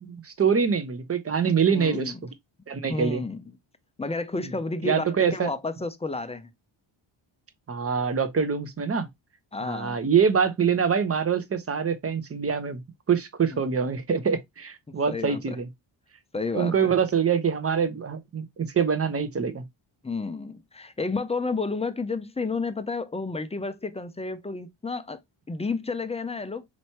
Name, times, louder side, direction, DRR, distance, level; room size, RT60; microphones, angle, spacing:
voice 1, 0.0-2.1 2.7-3.2 4.4-4.5 4.8-5.5 7.7-9.1 9.6-12.8 13.1-15.7 16.5-19.6, right 6 dB, 30° right, 0.7 m, -25 dB
voice 2, 1.7-2.2 2.9-3.4 4.0-6.5 9.5-10.0 13.5-13.8 15.1-15.6 16.3-16.9 20.0-25.2 25.5-26.7, left 3 dB, 15° left, 0.4 m, -31 dB
4.3 x 3.1 x 2.8 m
cardioid pair, 90°, 49 cm